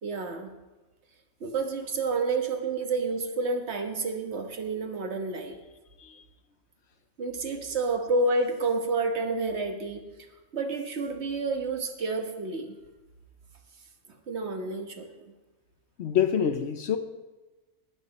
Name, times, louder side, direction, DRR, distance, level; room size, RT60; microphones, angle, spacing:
voice 1, 0.0-0.5 1.4-5.6 7.2-10.0 10.5-12.8 14.3-15.1, right 3 dB, 55° right, 4 dB, 1.5 m, -29 dB
voice 2, 16.0-17.0, left 8 dB, 60° left, 9 dB, 0.9 m, -26 dB
19.0 x 6.9 x 4.1 m, 1.1 s
omnidirectional pair, 1.5 m